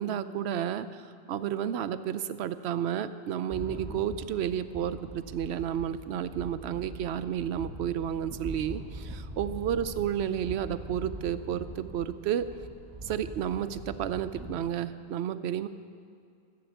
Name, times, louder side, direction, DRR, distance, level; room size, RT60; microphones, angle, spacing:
voice 1, 0.0-12.5 13.0-15.7, right 9 dB, 80° right, 13 dB, 0.8 m, -31 dB
sound 1, 3.5-14.5, right 1 dB, 20° right, 1.3 m, -43 dB
13.5 x 7.8 x 8.1 m, 2.4 s
omnidirectional pair, 1.1 m